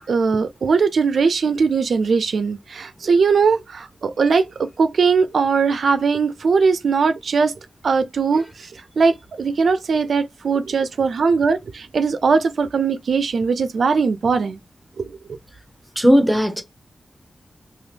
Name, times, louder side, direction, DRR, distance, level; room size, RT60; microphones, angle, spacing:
voice 1, 0.1-7.5 7.8-8.7 9.0-14.6 15.0-15.2, right 5 dB, 85° right, 0.3 m, -20 dB
voice 2, 16.0-16.6, equal, 5° right, 0.7 m, -16 dB
2.7 x 2.4 x 3.3 m
wide cardioid pair, 115°, 0 cm